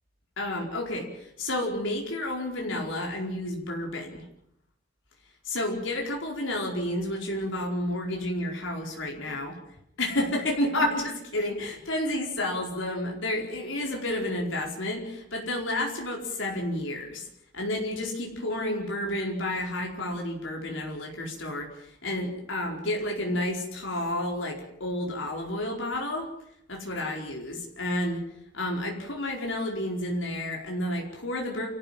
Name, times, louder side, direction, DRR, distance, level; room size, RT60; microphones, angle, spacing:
voice 1, 0.4-4.2 5.4-9.5 10.0-17.3 17.5-26.3 26.7-28.2 28.5-31.7, left 1 dB, 80° left, 0 dB, 4.8 m, -30 dB
29.0 x 14.5 x 7.6 m, 0.75 s
head